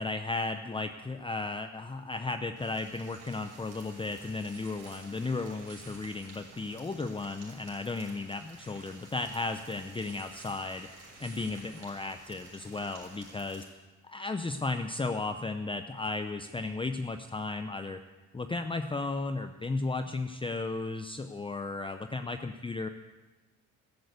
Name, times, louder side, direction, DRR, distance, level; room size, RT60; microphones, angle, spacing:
voice 1, 0.0-10.9 11.2-13.7 14.0-18.0 18.3-22.9, left 3 dB, 15° left, 8 dB, 0.7 m, -34 dB
sound 1, 2.6-13.6, right 3 dB, 85° right, 6.5 m, -52 dB
13.5 x 12.5 x 8.0 m, 1.2 s
cardioid pair, 90°, 30 cm